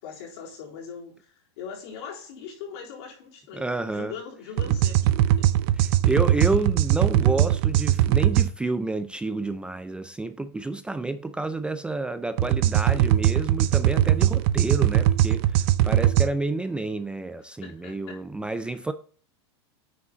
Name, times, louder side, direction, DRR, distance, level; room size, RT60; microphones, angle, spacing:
voice 1, 0.0-5.5 17.6-18.2 18.5-18.6, left 6 dB, 70° left, 3.7 m, -41 dB
voice 2, 3.5-4.1 5.8-18.9, right 2 dB, 5° right, 0.4 m, -29 dB
sound 1, 4.6-8.5 12.4-16.3, right 12 dB, 55° right, 0.6 m, -21 dB
9.4 x 4.8 x 3.9 m
supercardioid pair, 130°, 14 cm